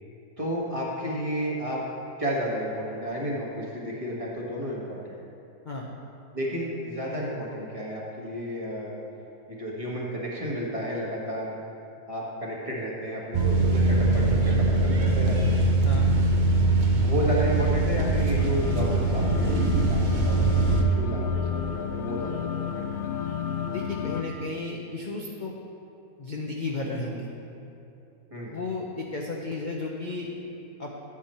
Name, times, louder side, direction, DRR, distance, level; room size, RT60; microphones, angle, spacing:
voice 1, 0.4-1.8 2.2-5.2 6.3-9.0 9.5-11.5 12.1-15.6 17.0-22.9 28.3-28.5, equal, 20° right, -4 dB, 1.5 m, -32 dB
sound 1, 13.3-20.8, right 2 dB, 40° right, 0.8 m, -22 dB
sound 2, 18.4-24.2, left 8 dB, 70° left, 1.0 m, -33 dB
voice 2, 23.7-25.6 26.2-27.3 28.5-30.3 30.8-30.9, left 3 dB, 40° left, -2 dB, 0.7 m, -33 dB
11.0 x 8.6 x 4.3 m, 2.7 s
omnidirectional pair, 1.7 m